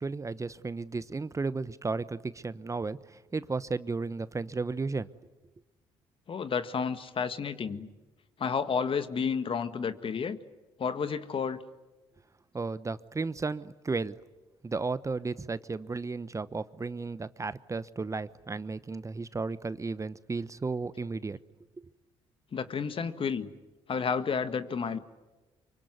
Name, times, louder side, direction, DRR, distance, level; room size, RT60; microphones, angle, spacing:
voice 1, 0.0-5.1 12.5-14.2 14.6-21.4, right 3 dB, 25° right, 16 dB, 1.0 m, -34 dB
voice 2, 6.3-7.9 8.4-10.4 10.8-11.6 22.5-23.5 23.9-25.0, left 6 dB, 45° left, 12 dB, 1.7 m, -31 dB
24.5 x 24.0 x 9.6 m, 1.1 s
hypercardioid pair, 55°, 12 cm